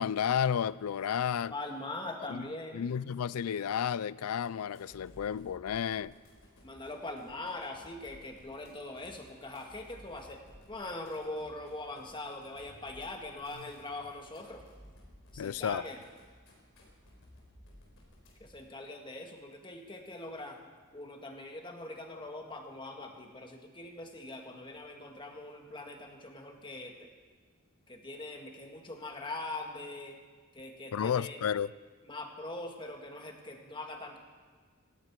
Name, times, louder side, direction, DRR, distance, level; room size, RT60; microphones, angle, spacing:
voice 1, 0.0-1.5 2.3-2.5 2.7-6.1 15.4-15.8 30.9-31.7, left 8 dB, 85° left, 0.4 m, -32 dB
voice 2, 1.5-2.9 6.6-10.4 10.7-14.6 15.3-16.0 18.4-27.0 27.9-30.2 30.5-31.4 32.1-34.2, left 2 dB, 20° left, 1.7 m, -42 dB
sound 1, 4.7-18.7, left 1 dB, 60° left, 4.1 m, -58 dB
18.0 x 16.0 x 4.6 m
head